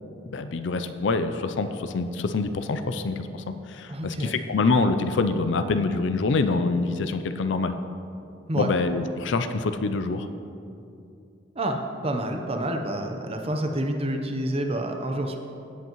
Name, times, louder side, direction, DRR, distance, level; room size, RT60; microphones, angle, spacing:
voice 1, 0.3-7.8 8.5-10.3, left 3 dB, 70° left, 9 dB, 0.5 m, -25 dB
voice 2, 3.9-4.3 8.5-8.7 11.5-15.4, right 1 dB, 30° right, 4 dB, 0.8 m, -28 dB
17.0 x 8.1 x 3.1 m, 2.7 s
head